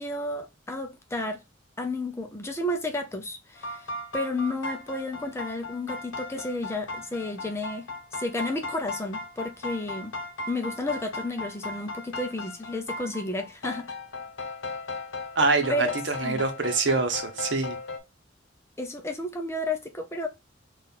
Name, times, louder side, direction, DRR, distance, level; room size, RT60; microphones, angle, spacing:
voice 1, 0.0-1.4 1.8-10.1 10.5-13.9 15.7-15.9 16.2-16.4 18.8-20.3, left 2 dB, 15° left, 0.5 m, -32 dB
sound 1, 3.6-18.0, left 2 dB, 75° left, 0.8 m, -37 dB
voice 2, 15.4-17.8, right 3 dB, 65° right, 0.9 m, -25 dB
4.1 x 2.5 x 3.9 m
head